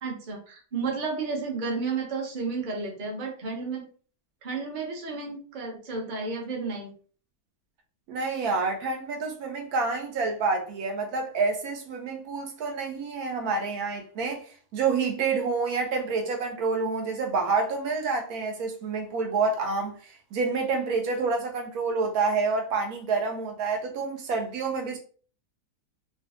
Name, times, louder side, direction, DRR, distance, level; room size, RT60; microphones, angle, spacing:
voice 1, 0.0-3.9 4.4-6.9, right 4 dB, 40° right, 0.8 m, -32 dB
voice 2, 8.1-14.4 14.7-25.0, right 4 dB, 75° right, 1.1 m, -28 dB
4.0 x 2.2 x 2.4 m
omnidirectional pair, 1.7 m